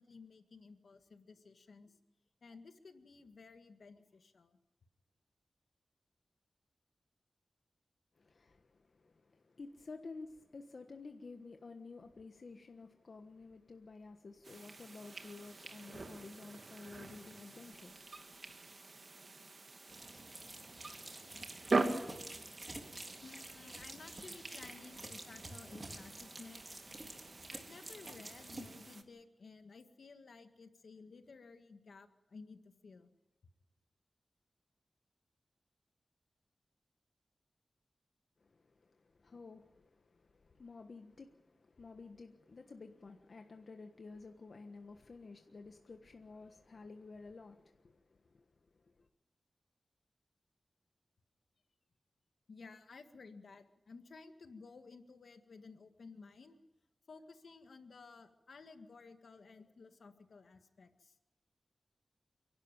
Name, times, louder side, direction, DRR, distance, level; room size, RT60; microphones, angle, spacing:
voice 1, 0.0-2.0 2.4-4.6 22.8-22.9 23.2-26.9 27.5-33.1 52.5-56.6 57.1-61.1, left 4 dB, 80° left, 1.8 m, -55 dB
voice 2, 8.1-18.8 38.4-49.1, left 3 dB, 60° left, 1.4 m, -52 dB
sound 1, 14.4-29.0, right 3 dB, 55° right, 2.1 m, -43 dB
sound 2, 19.9-28.7, right 2 dB, 30° right, 3.6 m, -50 dB
29.0 x 12.0 x 9.1 m
wide cardioid pair, 70°, 0 cm